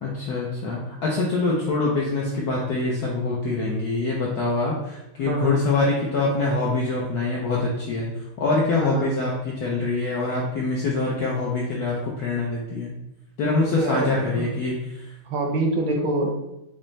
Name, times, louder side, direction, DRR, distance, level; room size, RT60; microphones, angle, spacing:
voice 1, 0.0-8.1 8.4-12.9 13.4-14.7 15.0-15.1, left 3 dB, 75° left, -4 dB, 0.9 m, -24 dB
voice 2, 5.3-5.6 8.8-9.2 13.8-14.5 15.3-16.3, right 2 dB, 75° right, 2 dB, 1.2 m, -25 dB
5.3 x 2.0 x 3.1 m, 0.90 s
omnidirectional pair, 2.3 m